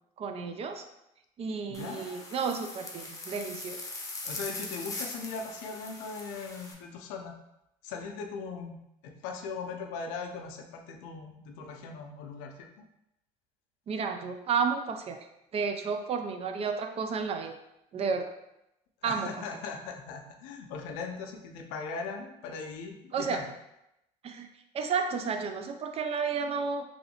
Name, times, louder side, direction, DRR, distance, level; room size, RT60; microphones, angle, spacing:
voice 1, 0.2-0.8 1.4-3.8 13.9-15.2 15.5-17.6 17.9-18.3 19.0-19.3 23.1-23.4 24.2-24.5 24.7-26.8, right 5 dB, 45° right, 6 dB, 0.4 m, -31 dB
voice 2, 1.7-2.2 4.2-7.4 7.8-12.7 19.0-23.4, left 4 dB, 85° left, 3 dB, 0.5 m, -39 dB
sound 1, 1.7-6.7, left 2 dB, 20° left, 0.7 m, -41 dB
3.0 x 2.7 x 2.8 m, 0.85 s
supercardioid pair, 80°, 15 cm